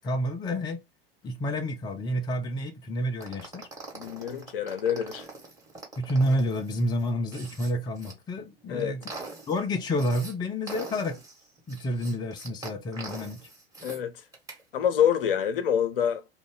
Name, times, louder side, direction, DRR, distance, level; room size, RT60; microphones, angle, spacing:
voice 1, 0.0-0.8 1.2-3.7 6.0-9.0 9.5-11.2 11.7-13.4, equal, 15° left, 0.5 m, -29 dB
sound 1, 3.2-8.1 8.6-10.3 10.7-14.0 14.3-14.6, right 3 dB, 10° right, 1.5 m, -43 dB
voice 2, 3.9-5.3 8.7-8.9 13.8-14.1 14.7-16.2, left 9 dB, 65° left, 0.7 m, -26 dB
2.9 x 2.4 x 3.7 m
figure-of-eight pair, 90°, 30 cm